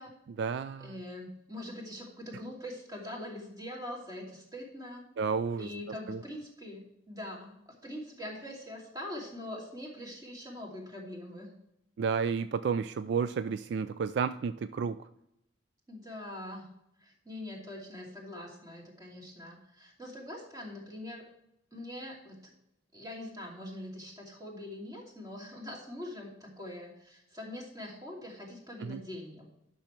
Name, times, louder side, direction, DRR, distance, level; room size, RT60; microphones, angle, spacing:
voice 1, 0.3-0.9 5.2-5.7 6.1-6.2 12.0-15.1 28.8-29.0, right 6 dB, 60° right, 12 dB, 0.3 m, -31 dB
voice 2, 0.8-5.0 5.6-7.6 7.8-11.5 15.9-16.6 17.0-21.2 21.7-22.4 22.9-29.5, left 1 dB, 20° right, -2 dB, 2.6 m, -43 dB
10.5 x 6.3 x 4.4 m, 0.84 s
head